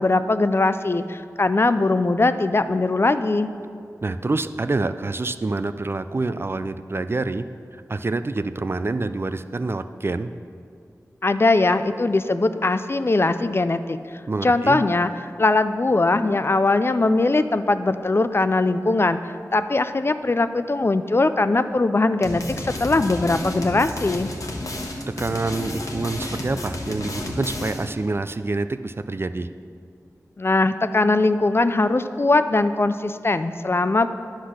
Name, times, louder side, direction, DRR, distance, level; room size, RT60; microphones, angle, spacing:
voice 1, 0.0-3.5 11.2-14.0 14.4-19.2 19.5-24.3 30.4-34.1, left 2 dB, 40° left, 11 dB, 0.4 m, -20 dB
voice 2, 4.0-7.4 7.7-10.3 14.3-14.8 25.1-29.5, right 3 dB, 40° right, 11 dB, 0.3 m, -27 dB
sound 1, 22.2-28.0, left 1 dB, 65° left, 1.1 m, -31 dB
10.0 x 4.0 x 6.3 m, 2.3 s
cardioid pair, 40°, 6 cm